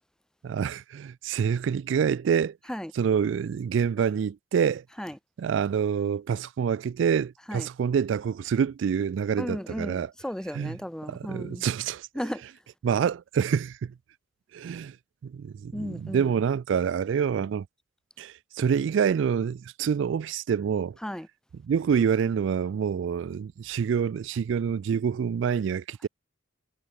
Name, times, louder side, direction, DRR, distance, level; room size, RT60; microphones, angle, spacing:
voice 1, 0.4-2.6 2.9-4.8 5.4-10.1 10.5-10.8 11.1-12.1 12.8-13.9 14.5-15.0 15.2-17.7 18.2-21.0 21.5-26.1, right 7 dB, 65° right, 0.3 m, -27 dB
voice 2, 9.4-11.7 12.2-12.4 15.7-16.3 21.0-21.3, equal, 5° left, 0.5 m, -34 dB
head